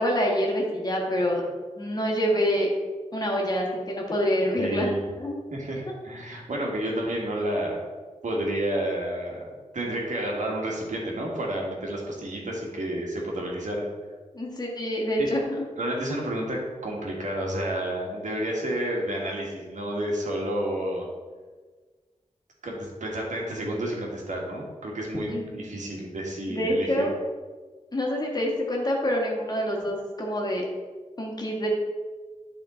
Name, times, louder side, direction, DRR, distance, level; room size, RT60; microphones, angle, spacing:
voice 1, 0.0-1.4 1.8-2.7 3.1-4.9 5.2-5.4 14.3-15.4 25.3-25.5 26.5-27.1 27.9-30.6 31.2-31.7, equal, 30° left, -1 dB, 1.6 m, -26 dB
voice 2, 4.6-5.0 5.5-7.8 8.2-9.5 9.7-13.8 15.2-15.3 15.8-21.1 22.6-27.1, right 1 dB, 70° right, -2 dB, 1.7 m, -30 dB
10.5 x 3.7 x 3.8 m, 1.4 s
wide cardioid pair, 105°, 13 cm